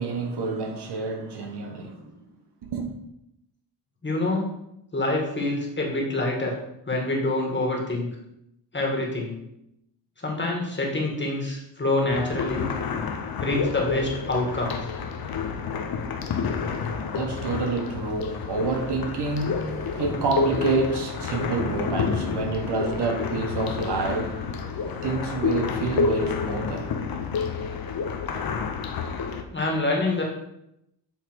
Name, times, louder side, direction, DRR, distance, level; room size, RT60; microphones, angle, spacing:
voice 1, 0.0-2.1 2.6-2.9 16.5-27.2, right 3 dB, 60° right, 3 dB, 1.1 m, -28 dB
voice 2, 4.0-4.5 4.9-6.5 6.9-8.1 8.7-9.4 10.2-12.7 13.4-14.8 29.5-30.2, left 2 dB, 25° left, -1 dB, 1.9 m, -26 dB
sound 1, 12.1-29.4, left 5 dB, 50° left, 0.8 m, -29 dB
8.0 x 3.3 x 4.6 m, 0.81 s
cardioid pair, 100°, 46 cm